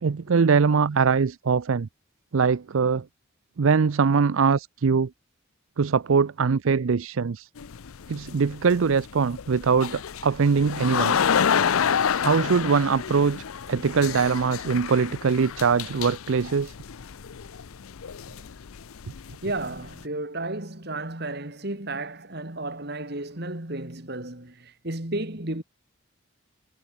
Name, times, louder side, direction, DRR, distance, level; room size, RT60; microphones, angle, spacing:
voice 1, 0.0-1.9 2.3-3.1 3.6-5.1 5.8-7.5 8.1-11.2 12.2-16.7, right 5 dB, 70° right, 0.5 m, -22 dB
sound 1, 7.6-20.0, left 7 dB, 80° left, 0.6 m, -29 dB
voice 2, 19.4-25.6, right 2 dB, 50° right, 2.7 m, -33 dB
head